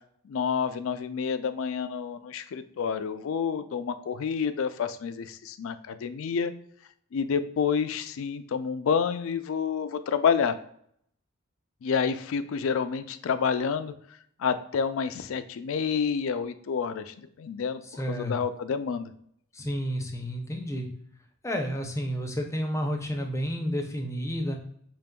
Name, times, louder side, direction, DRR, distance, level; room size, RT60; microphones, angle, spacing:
voice 1, 0.2-6.5 7.1-10.6 11.8-13.9 14.4-19.1, left 6 dB, 65° left, 12 dB, 0.3 m, -29 dB
voice 2, 18.0-18.4 19.5-20.9 21.4-24.6, equal, 15° left, 3 dB, 0.5 m, -30 dB
5.1 x 3.1 x 2.2 m, 0.67 s
head